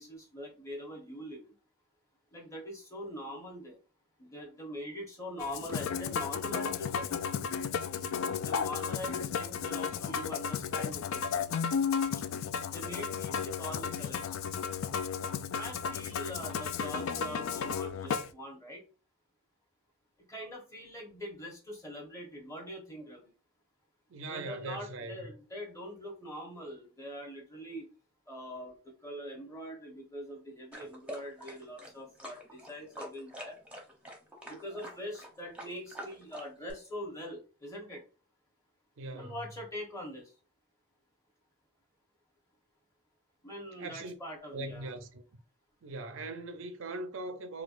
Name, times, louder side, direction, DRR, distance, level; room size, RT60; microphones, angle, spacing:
voice 1, 0.0-1.5 2.3-3.8 4.2-7.2 8.4-11.6 12.2-12.3 12.7-14.3 15.6-18.8 20.3-23.3 24.2-27.9 28.3-33.6 34.5-38.0 39.1-40.3 43.4-44.9, equal, 15° left, 1.0 m, -43 dB
Musical instrument, 5.4-18.3, left 6 dB, 70° left, 0.3 m, -34 dB
voice 2, 24.1-25.3 39.0-39.4 43.8-44.1 44.5-45.3 45.8-47.6, right 2 dB, 65° right, 0.5 m, -40 dB
sound 1, 30.7-36.7, equal, 5° right, 0.8 m, -46 dB
4.4 x 2.3 x 2.5 m
head